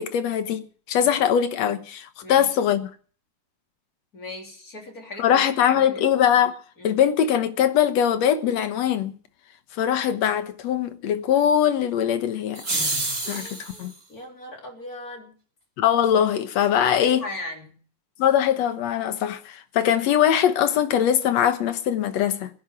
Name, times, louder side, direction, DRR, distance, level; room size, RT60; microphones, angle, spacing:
voice 1, 0.0-2.9 5.2-6.6 6.8-9.2 9.7-12.6 13.3-13.9 15.8-17.2 18.2-22.5, left 9 dB, 60° left, 2.2 m, -22 dB
voice 2, 4.1-6.0 6.8-7.0 13.2-15.3 16.8-17.8, left 2 dB, 25° left, 3.7 m, -38 dB
sound 1, 12.5-13.9, right 2 dB, 25° right, 5.2 m, -28 dB
20.5 x 10.5 x 6.0 m
omnidirectional pair, 3.7 m